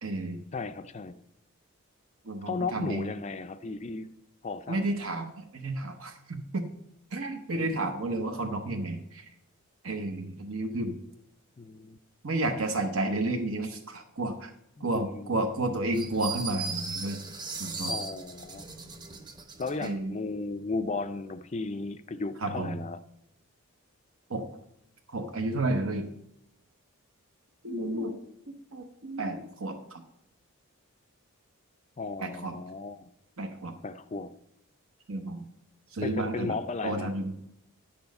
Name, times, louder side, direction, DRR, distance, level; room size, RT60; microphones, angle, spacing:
voice 1, 0.0-0.4 2.3-3.1 4.7-6.6 7.1-9.2 9.8-11.0 12.2-14.5 14.8-17.2 17.6-17.9 19.8-20.2 22.4-22.8 24.3-24.4 25.1-26.1 27.6-28.2 28.5-30.0 32.2-32.5 33.4-33.7 35.1-35.4 35.9-36.6 36.8-37.3, right 2 dB, 70° right, 1.0 m, -31 dB
voice 2, 0.5-1.2 2.5-4.1 4.4-5.0 7.5-7.9 11.6-12.0 14.8-15.4 17.9-18.6 19.6-23.0 32.0-33.1 33.8-34.3 36.0-37.1, left 3 dB, 30° left, 0.4 m, -35 dB
sound 1, 15.9-19.9, right 4 dB, 20° right, 0.8 m, -38 dB
10.5 x 7.1 x 5.3 m
head